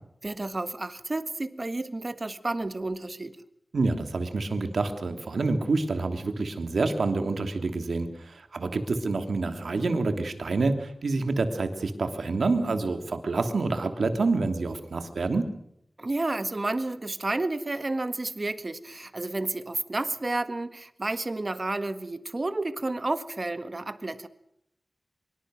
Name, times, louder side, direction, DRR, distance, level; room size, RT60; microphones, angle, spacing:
voice 1, 0.2-3.4 16.0-24.3, right 2 dB, 35° right, 12 dB, 1.7 m, -31 dB
voice 2, 3.7-15.5, right 3 dB, 85° right, 7 dB, 3.1 m, -27 dB
24.5 x 23.5 x 6.5 m, 0.75 s
wide cardioid pair, 100°, 0 cm